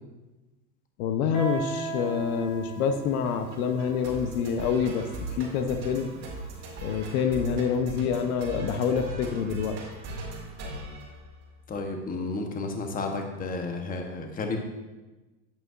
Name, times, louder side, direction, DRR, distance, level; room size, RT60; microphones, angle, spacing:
voice 1, 1.0-5.1 5.4-6.1 6.8-9.8, left 6 dB, 60° left, 8 dB, 0.8 m, -27 dB
Guitar, 1.3-6.8, right 2 dB, 35° left, 2.0 m, -38 dB
sound 1, 3.3-11.8, right 1 dB, 30° right, 2.2 m, -39 dB
voice 2, 11.7-14.6, left 3 dB, 15° left, 4 dB, 0.9 m, -32 dB
10.5 x 8.3 x 2.4 m, 1.1 s
supercardioid pair, 125°, 49 cm